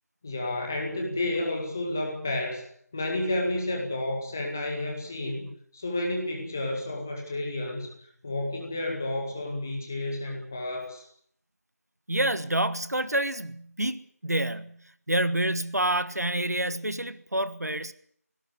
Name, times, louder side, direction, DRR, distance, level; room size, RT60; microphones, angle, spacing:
voice 1, 0.2-2.6 2.9-7.9 8.2-11.1, left 1 dB, 10° left, 1 dB, 1.9 m, -31 dB
voice 2, 12.1-17.9, right 1 dB, 75° right, 14 dB, 1.5 m, -28 dB
18.0 x 17.0 x 9.7 m, 0.65 s
figure-of-eight pair, 175°, 9 cm